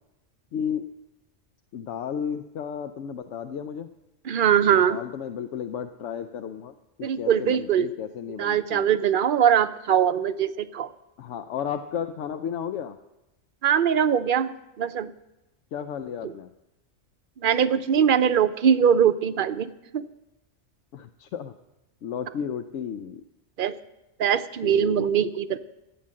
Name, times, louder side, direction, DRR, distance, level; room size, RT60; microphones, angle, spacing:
voice 1, 0.5-0.9 1.7-3.9 4.7-8.9 11.2-13.0 15.7-16.5 20.9-21.5 22.0-23.2 24.6-25.2, left 8 dB, 75° left, 8 dB, 0.9 m, -33 dB
voice 2, 4.3-5.0 7.0-7.9 8.4-10.9 13.6-14.5 14.8-15.1 17.4-20.0 23.6-23.7 24.2-25.6, right 8 dB, 55° right, 12 dB, 0.7 m, -22 dB
14.5 x 8.8 x 7.5 m, 0.96 s
omnidirectional pair, 1.3 m